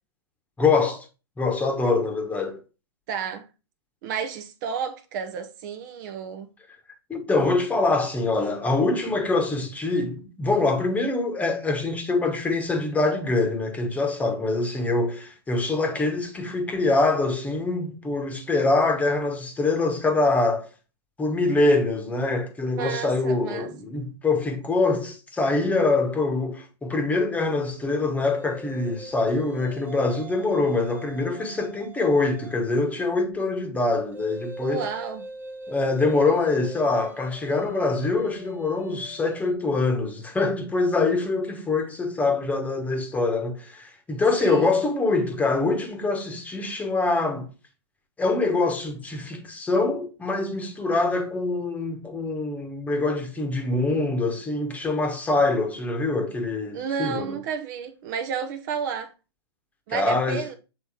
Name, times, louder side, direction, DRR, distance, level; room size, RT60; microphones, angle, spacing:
voice 1, 0.6-1.1 1.4-2.6 7.1-20.7 21.2-34.9 35.7-47.5 48.2-57.4 59.9-60.4, left 3 dB, 10° left, 1.2 m, -24 dB
voice 2, 3.1-3.5 4.0-6.5 22.8-23.7 34.6-35.2 44.4-44.7 56.7-59.1 59.9-60.5, right 6 dB, 45° right, 0.8 m, -31 dB
sound 1, 28.3-32.7 34.1-39.5, right 2 dB, 10° right, 1.0 m, -43 dB
7.0 x 4.0 x 3.6 m
hypercardioid pair, 115°, 15 cm